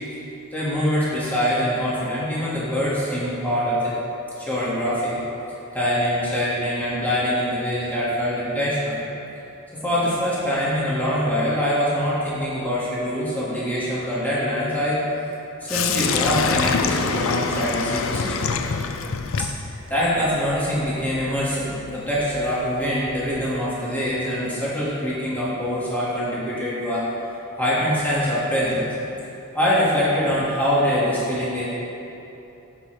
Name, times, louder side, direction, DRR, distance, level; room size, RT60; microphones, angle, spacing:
voice 1, 0.5-3.9 4.4-5.2 5.7-9.0 9.8-15.0 15.6-18.5 19.4-19.5 19.9-27.1 27.6-28.9 29.5-31.6, equal, 10° left, -9 dB, 1.8 m, -24 dB
Sink (filling or washing), 15.7-23.6, left 5 dB, 60° left, 0.4 m, -27 dB
14.5 x 6.0 x 3.3 m, 2.9 s
head